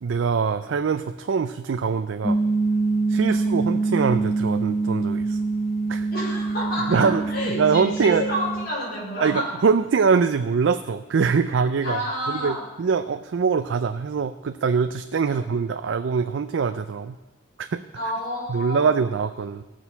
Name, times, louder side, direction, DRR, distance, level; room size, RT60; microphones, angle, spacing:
voice 1, 0.0-2.4 3.1-5.4 5.9-6.1 6.9-7.2 7.6-8.2 9.2-12.0 12.3-17.2 17.6-17.8 18.5-19.6, right 5 dB, 75° right, 9 dB, 0.4 m, -23 dB
sound 1, 2.2-8.7, right 3 dB, 5° left, 1.0 m, -25 dB
voice 2, 6.1-9.6 11.8-12.6 15.2-15.4 17.9-19.1, equal, 55° left, -5 dB, 5.1 m, -29 dB
17.5 x 6.4 x 5.5 m, 1.1 s
head